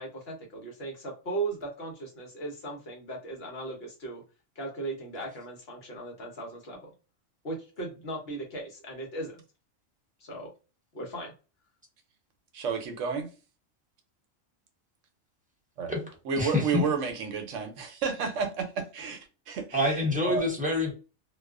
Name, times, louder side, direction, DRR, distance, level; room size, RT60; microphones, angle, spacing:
voice 1, 0.0-4.2 4.6-6.9 7.4-9.4 10.2-10.5 10.9-11.3, right 2 dB, 55° left, 1.0 m, -37 dB
voice 2, 12.5-13.3 15.8-15.9 16.2-19.9 20.2-20.4, right 5 dB, 70° right, 0.9 m, -31 dB
voice 3, 16.4-16.8 19.7-20.9, left 2 dB, 10° right, 0.6 m, -26 dB
2.3 x 2.3 x 2.3 m
omnidirectional pair, 1.4 m